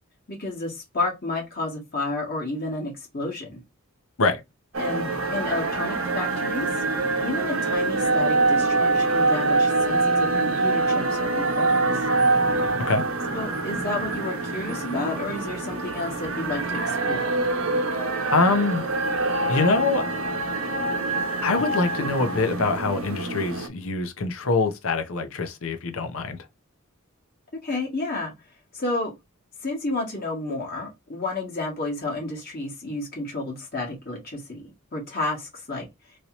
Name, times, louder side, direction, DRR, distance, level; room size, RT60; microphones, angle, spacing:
voice 1, 0.3-3.6 4.8-6.7 7.2-12.1 13.3-17.4 27.6-28.3 28.7-29.1 29.6-34.6 34.9-35.8, left 2 dB, 45° left, 1.6 m, -31 dB
sound 1, 4.7-23.7, right 2 dB, 70° right, 0.9 m, -25 dB
voice 2, 18.3-18.8 19.5-20.0 21.4-26.4, left 3 dB, 65° left, 0.7 m, -24 dB
3.2 x 2.8 x 2.9 m
head